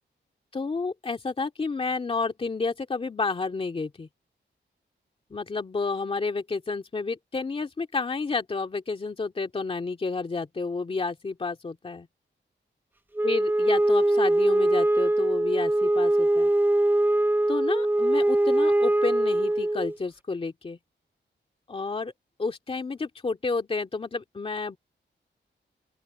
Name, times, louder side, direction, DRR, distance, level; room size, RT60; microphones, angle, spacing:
voice 1, 0.5-4.1 5.3-12.1 13.2-16.5 17.5-20.8 21.7-22.1 22.4-24.8, left 4 dB, 30° left, 2.3 m, -30 dB
Wind instrument woodwind instrument, 13.2-20.0, right 1 dB, 10° right, 0.7 m, -22 dB
open air
wide cardioid pair, 175°, 20 cm